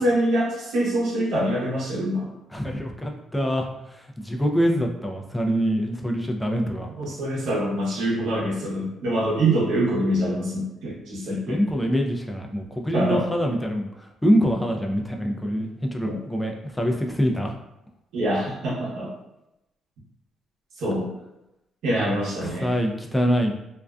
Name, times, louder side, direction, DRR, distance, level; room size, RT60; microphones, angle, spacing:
voice 1, 0.0-2.3 6.8-11.6 12.9-13.2 16.1-16.2 18.1-19.1 20.8-21.1 21.8-22.7, right 1 dB, 80° right, -5 dB, 0.9 m, -25 dB
voice 2, 2.5-7.1 11.3-17.5 22.1-23.6, equal, 5° left, 2 dB, 0.4 m, -25 dB
2.5 x 2.2 x 2.3 m, 0.89 s
cardioid pair, 90°, 0 cm